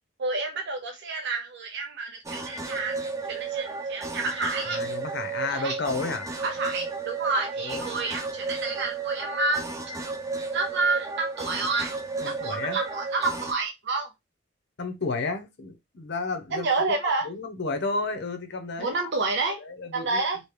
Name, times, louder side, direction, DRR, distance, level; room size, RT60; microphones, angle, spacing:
voice 1, 0.2-3.0 3.3-4.8 5.5-5.7 6.4-9.9 10.5-12.0 12.2-14.1 16.5-17.3 18.8-19.6 19.9-20.4, right 3 dB, 60° right, 0.6 m, -29 dB
sound 1, 2.2-13.5, right 4 dB, 15° right, 0.5 m, -33 dB
voice 2, 4.7-6.3 7.6-7.8 12.2-12.8 14.8-16.8 17.2-18.9 19.4-20.2, left 3 dB, 65° left, 0.7 m, -32 dB
2.9 x 2.8 x 3.2 m
head